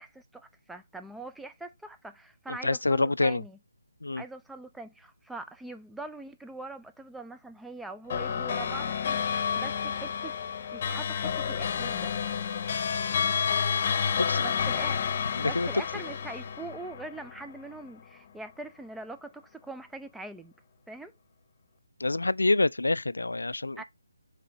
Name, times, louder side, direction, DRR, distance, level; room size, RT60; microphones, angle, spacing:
voice 1, 0.0-3.6 4.1-10.3 10.7-12.1 14.4-15.0 15.4-20.5 20.9-21.1 23.8-23.9, right 2 dB, 5° right, 0.4 m, -42 dB
voice 2, 2.5-3.4 4.0-4.2 14.2-14.4 15.4-15.7 22.0-23.8, left 2 dB, 80° left, 0.4 m, -27 dB
sound 1, 8.1-17.7, left 7 dB, 35° left, 0.9 m, -30 dB
7.5 x 3.4 x 3.9 m
figure-of-eight pair, 150°, 0 cm